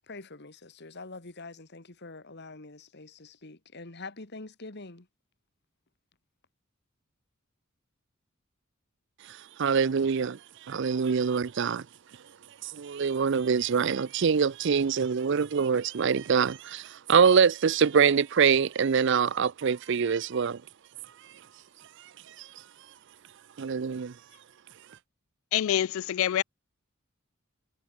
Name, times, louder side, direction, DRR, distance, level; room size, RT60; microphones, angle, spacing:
voice 1, 0.0-5.1, left 3 dB, 55° left, 2.0 m, -45 dB
voice 2, 9.6-10.4 10.7-11.8 12.6-20.6 23.6-24.1, right 6 dB, 60° right, 0.5 m, -24 dB
voice 3, 25.5-26.4, left 11 dB, 80° left, 0.3 m, -26 dB
head